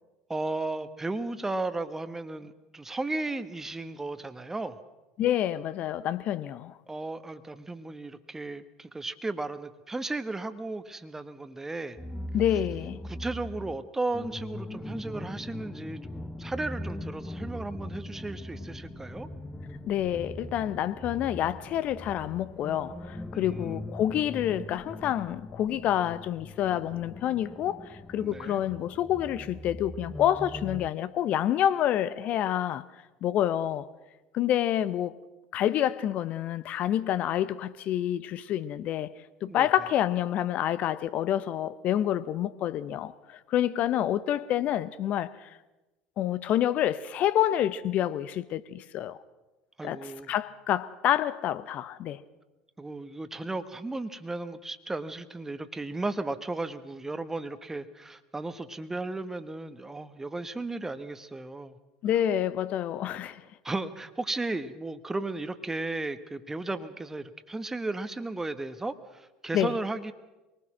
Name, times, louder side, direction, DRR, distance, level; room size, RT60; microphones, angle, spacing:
voice 1, 0.3-4.8 6.9-12.0 13.0-19.3 23.3-23.8 28.2-28.6 39.5-39.7 49.8-50.3 52.8-61.8 63.6-70.1, right 2 dB, 15° right, 1.3 m, -35 dB
voice 2, 5.2-6.7 12.3-13.0 19.8-32.8 33.2-33.9 34.3-35.2 35.5-39.1 39.4-45.5 46.2-49.2 49.8-52.2 62.0-63.5 69.5-69.7, left 11 dB, 50° left, 0.9 m, -28 dB
sound 1, 12.0-30.9, left 1 dB, 10° left, 1.1 m, -41 dB
sound 2, 18.8-28.7, left 3 dB, 75° left, 5.5 m, -57 dB
24.5 x 19.5 x 6.2 m
figure-of-eight pair, 70°, 3 cm